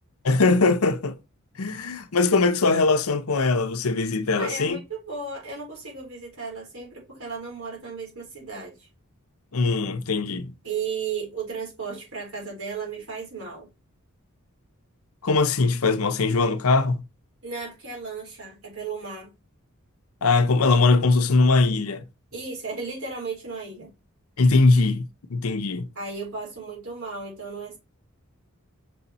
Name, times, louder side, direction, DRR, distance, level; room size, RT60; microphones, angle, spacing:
voice 1, 0.2-1.2 1.6-4.8 9.5-10.5 15.2-17.0 20.2-22.0 24.4-25.0 25.3-25.9, left 3 dB, 80° left, 0.7 m, -21 dB
voice 2, 4.3-8.9 10.6-13.7 17.4-19.3 22.3-23.9 26.0-27.8, right 5 dB, 75° right, 3.9 m, -35 dB
6.2 x 4.2 x 4.2 m
head